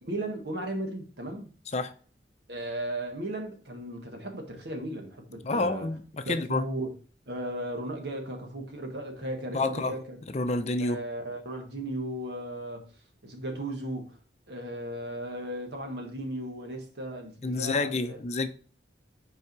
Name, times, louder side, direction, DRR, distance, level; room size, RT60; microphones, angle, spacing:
voice 1, 0.0-1.5 2.5-5.9 6.2-6.9 7.3-10.2 10.8-12.9 13.2-14.2 14.5-18.2, right 1 dB, 75° right, 1.6 m, -36 dB
voice 2, 5.4-6.6 9.5-9.9 10.3-11.0 17.4-18.5, left 2 dB, 40° left, 0.5 m, -28 dB
5.6 x 4.8 x 4.6 m
head